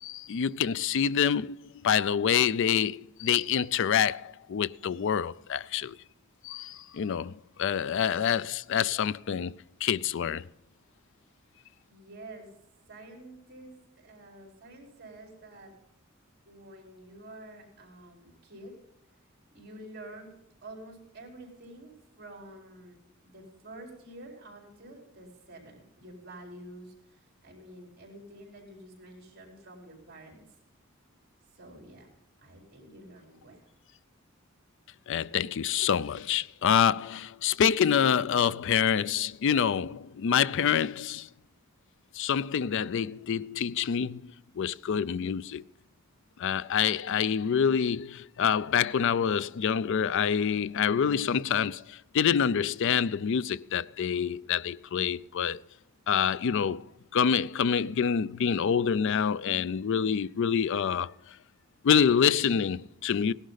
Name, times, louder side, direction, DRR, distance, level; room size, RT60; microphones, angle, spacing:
voice 1, 0.0-6.0 6.4-7.3 7.6-10.5 35.1-41.3 42.1-45.6 46.4-55.6 56.1-56.8 57.1-61.1 61.8-63.3, left 7 dB, 65° left, 0.4 m, -27 dB
voice 2, 11.9-12.5 12.9-15.7 16.5-18.8 19.5-20.3 20.6-30.4 31.5-32.1 32.4-33.6, right 1 dB, 50° right, 4.4 m, -48 dB
17.5 x 11.5 x 4.0 m
head